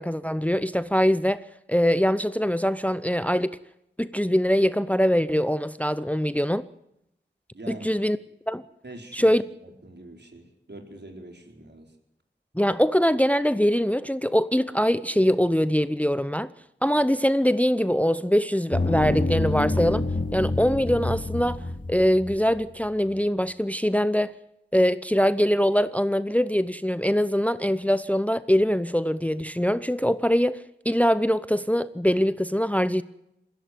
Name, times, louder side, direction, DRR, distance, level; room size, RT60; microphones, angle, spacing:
voice 1, 0.0-1.4 1.7-3.6 4.0-6.6 7.7-8.2 8.5-8.6 9.1-9.4 12.6-16.5 16.8-20.0 20.3-21.6 21.9-24.3 24.7-30.6 30.8-33.0, equal, 5° left, 0.7 m, -23 dB
voice 2, 7.5-7.9 8.8-11.9, right 2 dB, 65° right, 4.2 m, -44 dB
sound 1, 18.7-22.6, left 2 dB, 45° left, 3.0 m, -27 dB
21.0 x 16.0 x 9.3 m
wide cardioid pair, 50°, 19 cm